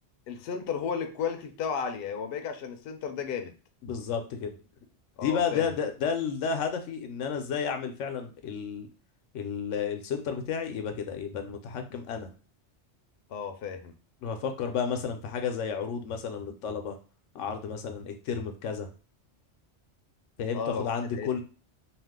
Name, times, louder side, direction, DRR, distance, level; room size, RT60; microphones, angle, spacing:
voice 1, 0.3-3.5 5.2-5.7 13.3-13.9 20.5-21.4, left 6 dB, 65° left, 6 dB, 0.7 m, -34 dB
voice 2, 3.8-4.5 5.2-8.9 9.3-12.3 14.2-17.0 17.3-18.9 20.4-21.4, left 6 dB, 90° left, 6 dB, 0.9 m, -32 dB
2.5 x 2.3 x 3.5 m, 0.35 s
omnidirectional pair, 1.2 m